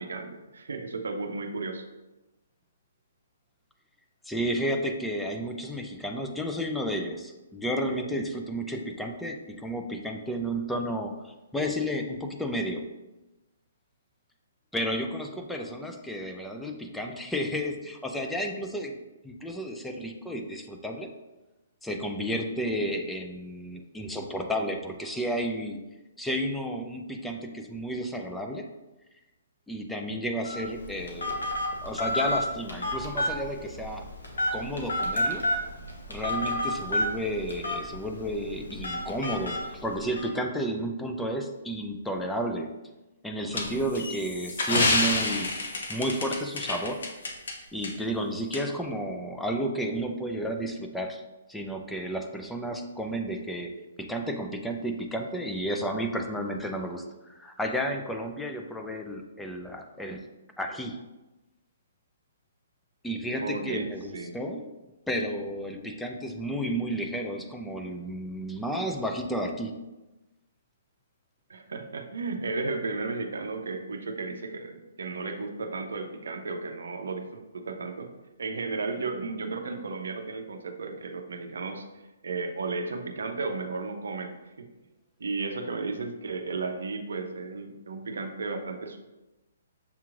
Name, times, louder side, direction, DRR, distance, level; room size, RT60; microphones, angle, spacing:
voice 1, 0.0-1.8 63.4-64.3 71.5-78.1 78.4-81.9 82.2-84.7 85.2-89.0, right 3 dB, 75° right, 5 dB, 0.5 m, -34 dB
voice 2, 4.2-12.9 14.7-19.0 19.2-21.1 21.8-25.8 26.2-28.7 29.7-31.5 31.8-34.1 34.5-35.5 36.1-42.7 43.2-45.6 45.9-47.0 47.7-51.2 51.5-53.7 54.0-57.0 57.4-60.2 60.6-61.0 63.0-64.7 65.1-69.8, equal, 5° left, 3 dB, 0.4 m, -32 dB
Telephone, 30.4-40.3, left 1 dB, 85° left, 1.1 m, -31 dB
sound 1, 43.5-47.5 47.8-47.9 48.5-48.6, left 2 dB, 65° left, 0.8 m, -28 dB
6.9 x 2.9 x 2.4 m, 1.0 s
hypercardioid pair, 140°, 0 cm